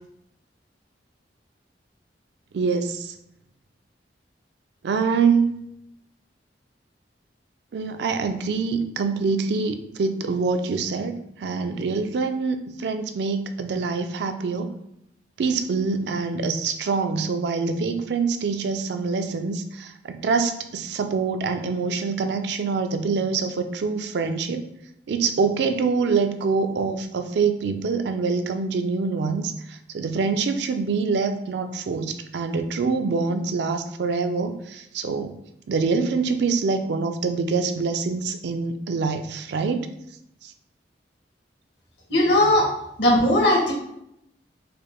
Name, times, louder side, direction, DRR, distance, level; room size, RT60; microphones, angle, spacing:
voice 1, 2.5-3.1 4.8-5.6 7.7-14.7 15.4-24.6 25.1-35.4 35.7-39.9 40.4-40.5, right 4 dB, 65° right, 8 dB, 0.3 m, -25 dB
voice 2, 42.1-42.7 43.0-43.7, left 1 dB, 75° left, -3 dB, 1.3 m, -18 dB
4.8 x 2.1 x 3.0 m, 0.78 s
head